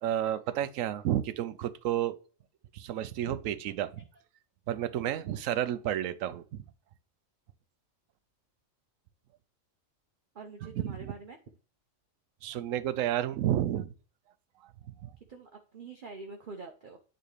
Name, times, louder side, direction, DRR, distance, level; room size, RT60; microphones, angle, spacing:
voice 1, 0.0-2.2 2.7-4.0 4.7-6.6 10.8-11.1 12.4-13.9 15.0-15.1, right 11 dB, 75° right, 1.0 m, -31 dB
voice 2, 10.3-11.4 15.3-17.0, right 4 dB, 45° right, 0.8 m, -45 dB
9.1 x 4.0 x 3.2 m
omnidirectional pair, 1.4 m